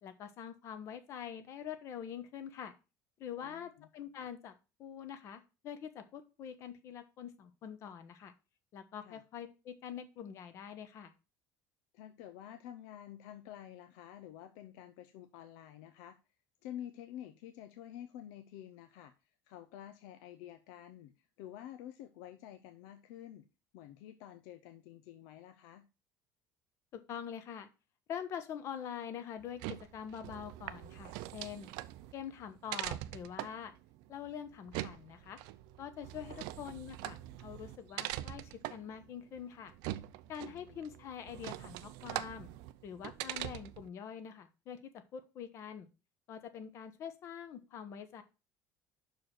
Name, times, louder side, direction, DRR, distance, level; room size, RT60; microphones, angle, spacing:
voice 1, 0.0-2.7 3.2-4.5 4.8-8.3 8.7-11.1 26.9-27.7 28.1-31.7 32.1-33.7 34.1-35.4 35.8-39.7 40.3-42.5 42.8-45.9 46.3-48.2, left 8 dB, 40° left, 10 dB, 1.0 m, -45 dB
voice 2, 3.4-3.9 9.0-9.2 11.9-16.2 16.6-23.5 23.7-25.8 36.2-36.4 40.4-40.8, left 11 dB, 85° left, 9 dB, 0.6 m, -50 dB
glass-door, 29.4-43.9, right 15 dB, 80° right, 0.5 m, -43 dB
6.0 x 4.8 x 6.4 m, 0.30 s
cardioid pair, 170°, 7 cm